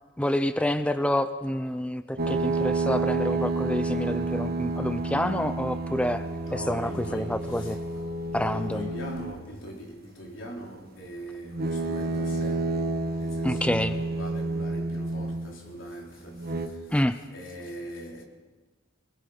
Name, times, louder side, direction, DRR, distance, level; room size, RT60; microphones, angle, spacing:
voice 1, 0.2-7.8 8.3-8.9 13.4-14.0 16.9-17.2, left 1 dB, 5° left, 0.5 m, -28 dB
sound 1, 2.2-9.5 11.5-15.7 16.3-16.7, right 2 dB, 50° right, 1.4 m, -30 dB
voice 2, 6.4-7.8 8.5-12.7 13.2-16.4 17.3-18.2, equal, 75° left, 3.9 m, -41 dB
26.5 x 20.5 x 5.1 m
head